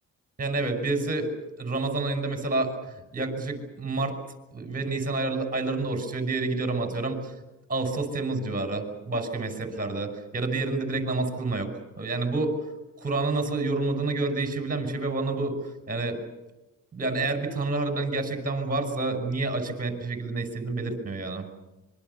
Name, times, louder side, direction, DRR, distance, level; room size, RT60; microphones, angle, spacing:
voice 1, 0.4-1.3 1.6-4.2 4.5-7.3 7.7-11.7 12.0-12.6 13.0-15.6 15.9-16.2 16.9-21.5, right 3 dB, 30° right, 5 dB, 5.9 m, -28 dB
26.0 x 23.5 x 7.0 m, 1.0 s
cardioid pair, 90°, 30 cm